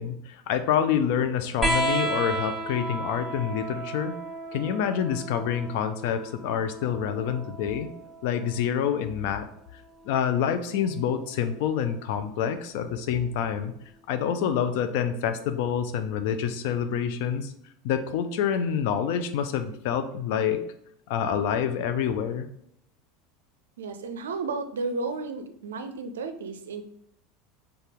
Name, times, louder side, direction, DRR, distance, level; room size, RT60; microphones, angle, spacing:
voice 1, 0.0-4.1 4.5-7.9 8.2-9.5 9.7-13.7 14.1-17.5 17.8-20.6 21.1-22.5, left 8 dB, 55° left, 9 dB, 0.4 m, -27 dB
sound 1, 1.6-8.7 10.1-10.9 12.2-12.3, right 2 dB, 5° right, 1.1 m, -33 dB
voice 2, 23.8-26.8, right 3 dB, 70° right, 9 dB, 0.4 m, -33 dB
4.0 x 3.4 x 3.5 m, 0.72 s
figure-of-eight pair, 75°, 0 cm